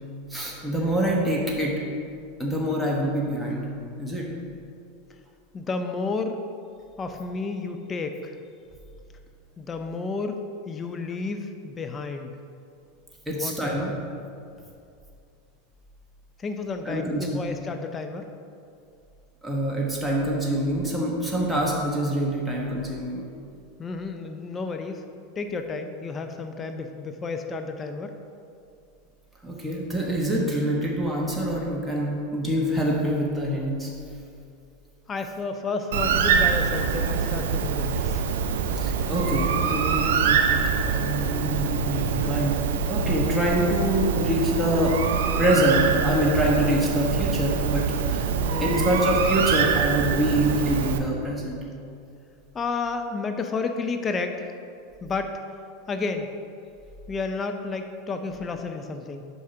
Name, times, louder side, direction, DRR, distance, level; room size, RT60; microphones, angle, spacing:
voice 1, 0.3-1.7 2.4-3.7 4.0-4.3 13.3-13.9 16.8-17.4 19.4-23.3 29.4-33.9 38.7-42.6 42.9-45.0 45.4-48.3 48.6-51.6, right 1 dB, 5° right, -4 dB, 1.2 m, -25 dB
voice 2, 5.5-6.4 7.0-8.4 9.6-10.4 10.7-12.3 13.3-14.0 16.4-18.3 23.8-25.0 25.4-28.1 35.1-38.2 48.4-49.0 52.5-54.5 55.0-55.4 55.9-56.3 57.1-59.3, left 4 dB, 25° left, 6 dB, 0.5 m, -31 dB
Bird, 35.9-51.0, right 6 dB, 75° right, 0.5 m, -25 dB
5.5 x 4.8 x 5.7 m, 2.5 s
hypercardioid pair, 105°, 0 cm